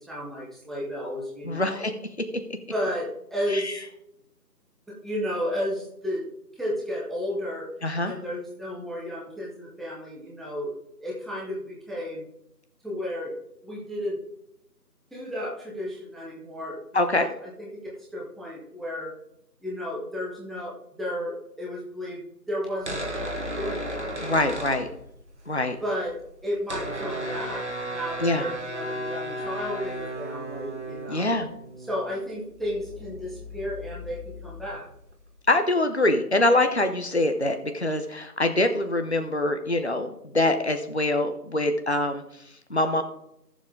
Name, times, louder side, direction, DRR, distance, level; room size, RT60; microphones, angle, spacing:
voice 1, 0.0-1.9 2.7-3.8 4.9-6.2 6.6-7.7 8.0-12.3 12.8-13.3 13.6-14.2 15.1-16.8 17.1-19.1 19.6-24.7 25.8-26.1 26.4-31.4 31.8-34.9, equal, ahead, -5 dB, 0.9 m, -33 dB
voice 2, 1.4-1.9 2.2-2.3 3.5-3.7 7.8-8.1 16.9-17.3 24.2-24.9 25.5-25.8 28.2-28.4 31.1-31.5 35.5-42.4 42.7-43.0, left 2 dB, 40° left, 7 dB, 0.8 m, -24 dB
sound 1, 22.7-25.5 25.7-25.8 26.0-35.4, right 1 dB, 45° right, 1.3 m, -35 dB
14.0 x 7.2 x 3.6 m, 0.79 s
figure-of-eight pair, 170°, 49 cm